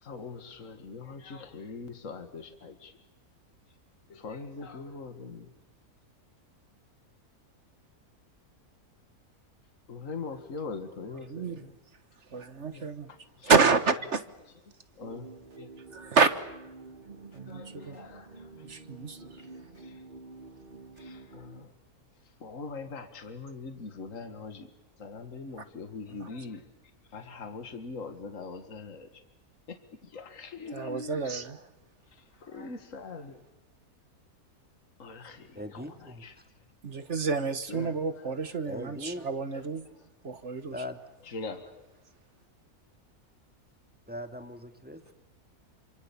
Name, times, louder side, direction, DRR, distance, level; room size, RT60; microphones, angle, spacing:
voice 1, 0.0-2.9 4.1-5.5 9.9-11.7 12.7-12.9 13.4-13.5 15.0-15.3 15.6-15.7 17.5-18.5 19.8-19.9 21.0-21.7 22.4-24.7 25.0-26.6 27.1-29.1 29.7-31.2 32.4-33.4 35.0-35.8 36.2-36.3 37.7-38.0 41.3-41.7, left 4 dB, 60° left, 2.2 m, -42 dB
voice 2, 11.3-11.6 12.3-13.1 13.4-14.2 15.9-16.3 17.3-18.0 18.6-19.2 26.2-26.3 30.7-31.6 36.8-39.9 40.2-40.7, right 4 dB, 50° right, 1.6 m, -28 dB
sound 1, 15.0-21.6, right 3 dB, 35° right, 1.7 m, -48 dB
voice 3, 35.5-36.5 38.6-39.3 40.7-41.0 44.1-45.1, equal, 5° right, 2.1 m, -40 dB
28.0 x 26.5 x 7.1 m
omnidirectional pair, 1.6 m